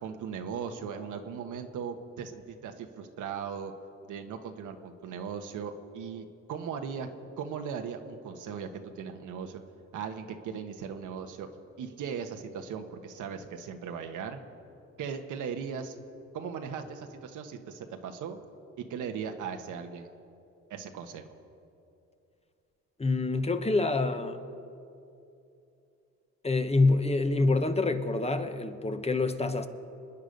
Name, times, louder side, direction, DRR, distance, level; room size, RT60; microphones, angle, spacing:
voice 1, 0.0-3.7 4.1-7.1 7.4-9.6 9.9-11.5 11.8-14.4 15.0-16.0 16.3-18.4 18.8-20.1 20.7-21.3, right 7 dB, 80° right, 6 dB, 1.4 m, -38 dB
voice 2, 23.0-24.4 26.4-29.7, left 3 dB, 20° left, 8 dB, 1.1 m, -26 dB
26.0 x 9.9 x 5.3 m, 2.7 s
cardioid pair, 90°, 30 cm